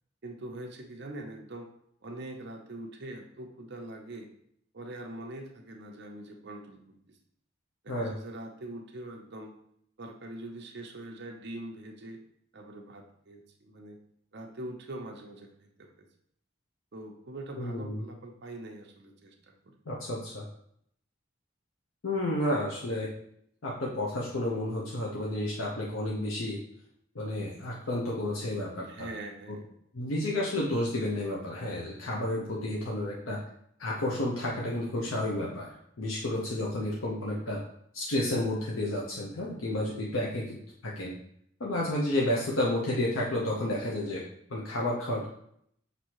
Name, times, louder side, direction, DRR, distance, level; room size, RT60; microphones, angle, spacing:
voice 1, 0.2-1.7 2.0-4.3 4.7-7.2 7.8-9.5 10.0-12.2 12.5-14.0 14.3-16.1 16.9-19.7 28.8-29.7, right 1 dB, 55° right, 2 dB, 0.7 m, -43 dB
voice 2, 17.6-18.0 19.9-20.4 22.0-23.1 23.6-26.6 27.1-29.1 29.5-29.6 29.9-33.4 33.8-37.6 37.9-40.6 40.8-41.1 41.6-44.2 44.5-45.3, left 1 dB, 80° left, -4 dB, 0.7 m, -31 dB
6.0 x 2.7 x 3.0 m, 0.69 s
head